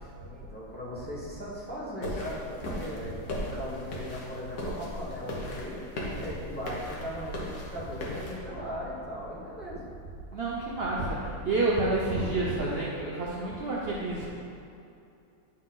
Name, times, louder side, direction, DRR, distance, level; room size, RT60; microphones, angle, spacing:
voice 1, 0.1-9.8, equal, 5° left, -8 dB, 1.2 m, -39 dB
sound 1, 2.0-8.4, left 1 dB, 55° left, 1.5 m, -37 dB
voice 2, 10.3-14.2, right 2 dB, 70° right, -5 dB, 0.5 m, -29 dB
9.5 x 4.3 x 3.8 m, 2.6 s
omnidirectional pair, 2.1 m